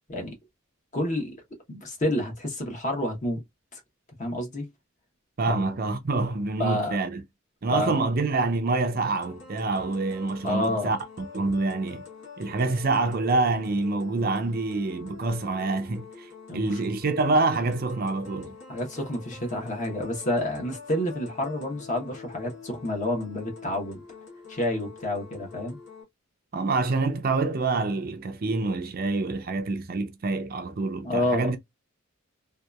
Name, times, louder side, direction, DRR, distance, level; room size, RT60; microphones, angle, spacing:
voice 1, 0.9-1.4 1.7-3.4 3.7-3.8 4.2-4.7 5.5-5.6 6.6-7.0 7.7-8.1 10.4-10.9 16.5-16.8 18.7-24.0 24.5-25.8 31.0-31.5, left 1 dB, 35° left, 0.9 m, -29 dB
voice 2, 5.4-7.2 7.6-12.0 12.4-18.6 26.5-31.6, right 3 dB, 45° right, 0.5 m, -26 dB
sound 1, 9.0-26.0, left 5 dB, 60° left, 1.1 m, -46 dB
2.7 x 2.3 x 2.2 m
head